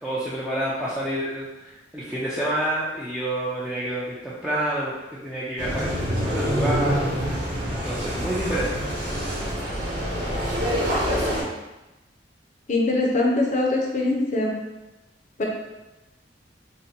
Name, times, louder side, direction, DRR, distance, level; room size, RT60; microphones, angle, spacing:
voice 1, 0.0-4.9 5.2-7.0 7.8-8.9, right 1 dB, 5° right, -8 dB, 0.4 m, -28 dB
sound 1, 5.6-11.4, equal, 50° right, 1.0 m, -26 dB
voice 2, 12.7-14.5 15.4-15.5, left 2 dB, 45° left, -1 dB, 0.6 m, -22 dB
3.8 x 2.1 x 2.7 m, 1.0 s
head